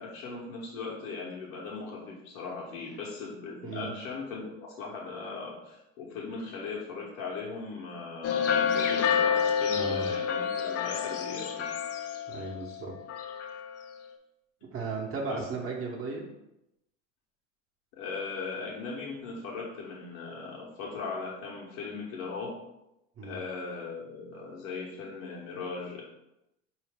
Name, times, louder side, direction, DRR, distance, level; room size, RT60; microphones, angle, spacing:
voice 1, 0.0-11.7 15.2-15.5 17.9-22.5 23.2-26.0, left 4 dB, 65° left, -3 dB, 1.2 m, -38 dB
sound 1, 8.2-12.8 13.1-13.8, left 7 dB, 40° left, 0.6 m, -29 dB
voice 2, 9.7-10.1 12.3-12.9 14.7-16.2 23.2-23.4, right 4 dB, 35° right, -1 dB, 1.0 m, -35 dB
4.7 x 2.8 x 3.5 m, 0.90 s
hypercardioid pair, 90°, 40 cm